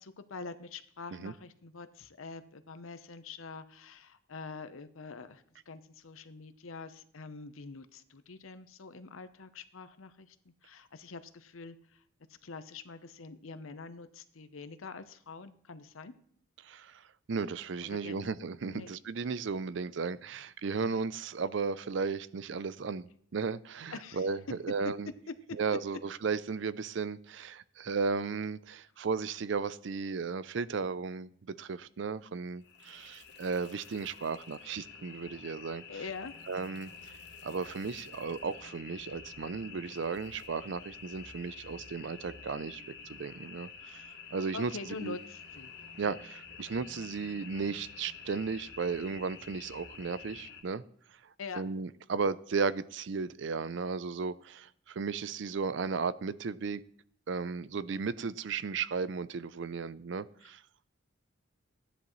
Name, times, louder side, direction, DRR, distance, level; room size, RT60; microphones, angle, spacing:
voice 1, 0.0-10.4 10.6-11.8 12.4-16.1 17.9-18.3 18.7-18.9 23.9-24.2 35.9-36.3 44.5-45.7 51.4-51.6, left 4 dB, 80° left, 11 dB, 0.8 m, -45 dB
voice 2, 16.6-17.0 17.3-25.1 25.5-36.0 36.5-36.9 37.4-42.8 43.1-44.0 44.3-45.2 46.0-50.8 51.5-56.8 57.3-60.6, right 5 dB, 60° right, 17 dB, 0.4 m, -35 dB
sound 1, 32.6-50.6, left 5 dB, 55° left, 1.4 m, -49 dB
14.5 x 10.0 x 3.1 m, 0.63 s
head